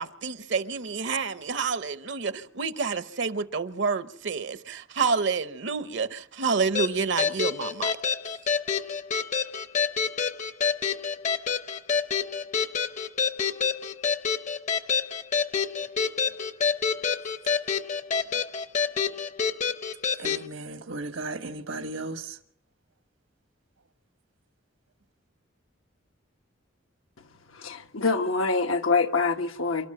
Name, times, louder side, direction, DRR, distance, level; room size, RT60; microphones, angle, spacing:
voice 1, 0.0-8.0, right 5 dB, 60° right, 0.8 m, -28 dB
sound 1, 6.7-20.4, left 6 dB, 35° left, 0.8 m, -28 dB
voice 2, 20.2-22.4, right 2 dB, 80° right, 1.3 m, -35 dB
voice 3, 27.5-29.9, left 4 dB, 85° left, 1.4 m, -25 dB
28.5 x 13.0 x 7.7 m
head